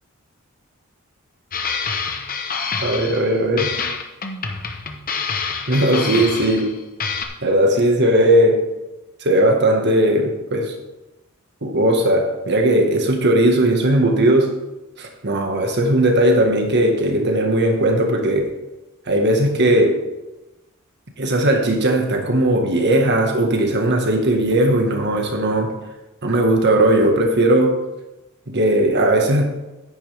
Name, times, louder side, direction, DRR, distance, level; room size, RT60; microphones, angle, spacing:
sound 1, 1.5-3.3 3.6-6.7 7.0-7.3, left 5 dB, 40° left, 1.0 m, -27 dB
voice 1, 2.8-3.7 5.7-6.8 7.4-8.6 9.2-10.7 11.6-14.5 15.0-18.4 19.1-20.0 21.2-25.7 26.2-27.7 28.5-29.5, right 1 dB, 55° right, 3 dB, 1.6 m, -17 dB
9.9 x 9.6 x 3.5 m, 1.0 s
head